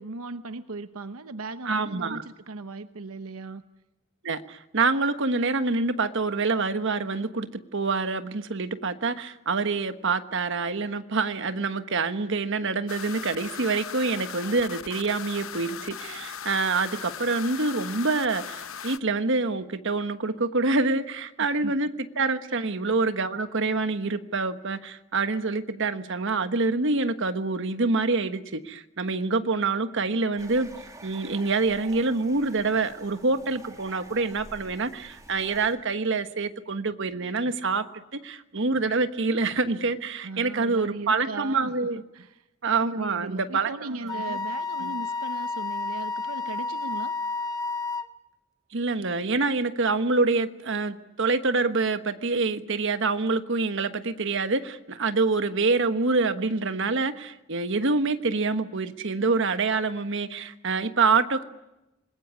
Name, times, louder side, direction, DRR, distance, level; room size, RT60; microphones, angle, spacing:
voice 1, 0.0-3.6 21.6-21.7 22.5-22.7 40.2-41.9 42.1-42.5 42.8-47.1, right 3 dB, 85° right, 10 dB, 1.0 m, -37 dB
voice 2, 1.7-2.2 4.2-21.9 22.2-30.7 31.0-37.8 38.1-42.0 42.6-43.7 44.3-44.4 44.8-44.9 48.7-61.4, right 3 dB, 60° right, 10 dB, 1.3 m, -26 dB
sound 1, 12.9-19.0, left 8 dB, 70° left, 0.9 m, -38 dB
sound 2, 30.4-35.7, right 2 dB, 15° right, 2.6 m, -48 dB
Wind instrument woodwind instrument, 44.1-48.1, left 3 dB, 15° left, 1.1 m, -31 dB
27.0 x 20.5 x 9.7 m, 0.94 s
head